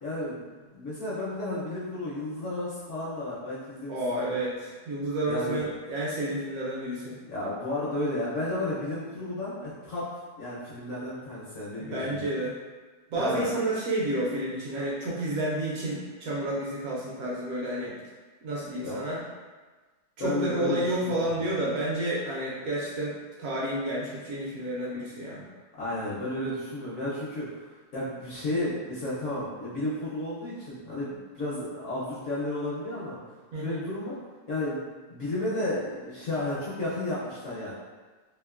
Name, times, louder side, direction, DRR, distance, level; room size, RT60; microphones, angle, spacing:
voice 1, 0.0-4.4 5.3-5.6 7.3-10.0 10.4-12.2 13.1-13.5 18.8-19.0 20.2-21.2 25.8-33.2 33.6-34.2 34.5-34.8 35.1-37.7, left 1 dB, 60° left, -9 dB, 0.8 m, -32 dB
voice 2, 3.9-7.2 11.8-12.5 13.1-17.9 18.4-19.2 20.2-25.4 33.5-33.8, right 1 dB, 70° right, -5 dB, 0.9 m, -30 dB
2.9 x 2.5 x 2.3 m, 1.3 s
omnidirectional pair, 1.8 m